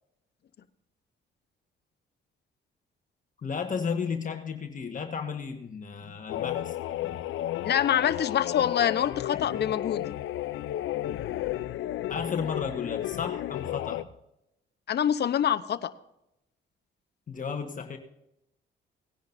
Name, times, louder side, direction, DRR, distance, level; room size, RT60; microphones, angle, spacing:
voice 1, 3.4-6.8 7.0-7.2 12.1-14.1 17.3-18.0, left 6 dB, 40° left, 4 dB, 1.4 m, -33 dB
sound 1, 6.3-14.0, left 13 dB, 80° left, 0.5 m, -33 dB
voice 2, 7.6-10.1 14.9-15.9, left 9 dB, 55° left, 12 dB, 0.9 m, -26 dB
18.5 x 10.5 x 2.6 m, 0.85 s
cardioid pair, 90°, 20 cm